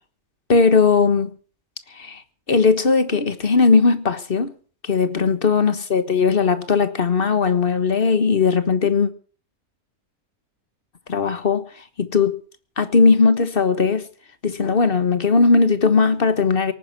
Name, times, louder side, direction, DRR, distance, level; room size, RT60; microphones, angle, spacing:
voice 1, 0.5-1.3 1.9-2.2 2.5-4.5 4.8-9.1 11.1-11.6 12.0-12.4 12.8-14.1 14.4-16.7, left 4 dB, 40° left, 1.5 m, -18 dB
18.0 x 9.9 x 7.7 m
omnidirectional pair, 1.6 m